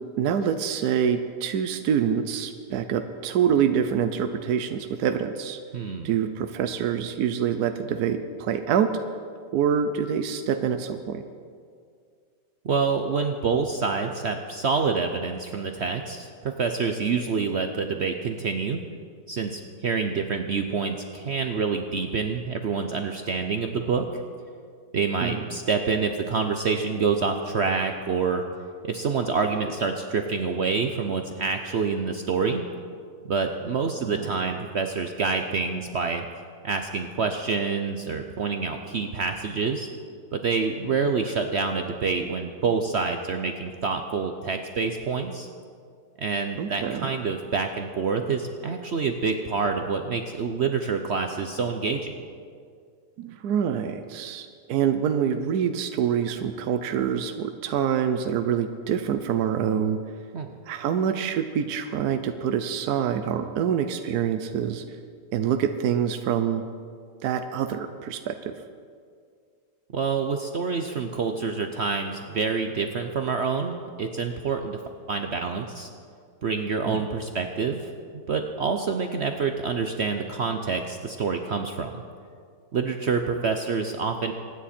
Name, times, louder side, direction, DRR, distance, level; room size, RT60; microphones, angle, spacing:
voice 1, 0.2-5.6 6.0-8.9 9.5-11.2 25.2-25.4 34.0-34.3 46.6-47.1 53.2-60.0 60.7-64.8 65.3-66.6 67.2-68.5 76.9-77.0, right 8 dB, 75° right, 8 dB, 1.2 m, -26 dB
voice 2, 5.7-6.1 12.6-18.8 19.3-24.2 24.9-28.4 28.9-32.7 33.2-36.2 36.6-39.9 40.3-45.5 46.2-52.2 60.3-60.5 69.9-74.8 75.1-75.9 76.4-81.9 82.7-84.3, right 5 dB, 55° right, 5 dB, 0.8 m, -27 dB
24.0 x 9.8 x 4.3 m, 2.2 s
omnidirectional pair, 1.7 m